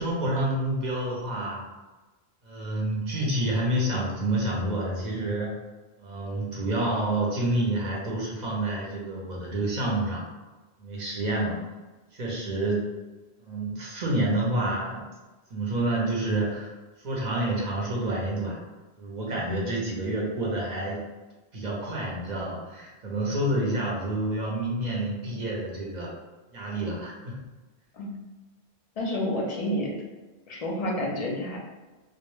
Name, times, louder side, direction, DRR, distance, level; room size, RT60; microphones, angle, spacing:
voice 1, 0.0-1.6 2.4-5.5 6.0-10.2 10.8-11.6 12.1-12.8 13.4-15.0 15.5-16.7 17.0-18.6 19.0-21.0 21.5-26.1 26.5-27.4, right 1 dB, 50° right, -4 dB, 0.6 m, -28 dB
voice 2, 29.0-30.0 30.5-31.6, left 1 dB, 45° left, -2 dB, 0.5 m, -29 dB
2.1 x 2.0 x 3.0 m, 1.2 s
omnidirectional pair, 1.1 m